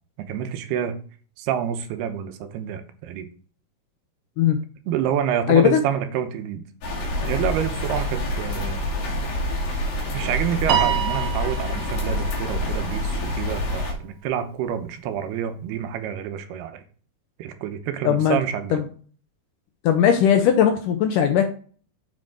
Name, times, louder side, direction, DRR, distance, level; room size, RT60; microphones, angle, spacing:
voice 1, 0.2-1.0 1.4-3.3 4.9-6.7 7.2-8.8 10.1-16.8 17.4-18.9, right 9 dB, 85° right, 7 dB, 2.9 m, -28 dB
voice 2, 5.5-5.8 18.1-18.4 18.7-18.8 19.8-21.4, left 9 dB, 80° left, 6 dB, 1.9 m, -18 dB
sound 1, 6.8-13.9, left 1 dB, 50° left, 3.1 m, -27 dB
Piano, 10.7-13.2, right 9 dB, 65° right, 2.6 m, -27 dB
7.7 x 6.6 x 3.7 m, 0.42 s
omnidirectional pair, 4.6 m